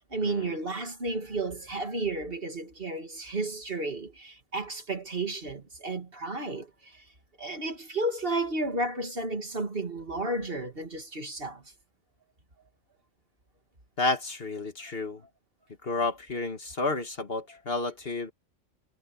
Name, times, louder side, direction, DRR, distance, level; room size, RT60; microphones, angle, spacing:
voice 1, 0.1-7.0 7.4-11.6 17.5-17.6, right 2 dB, 45° right, 2.6 m, -32 dB
voice 2, 14.0-15.2 15.8-18.3, left 3 dB, 50° left, 2.0 m, -31 dB
omnidirectional pair, 1.3 m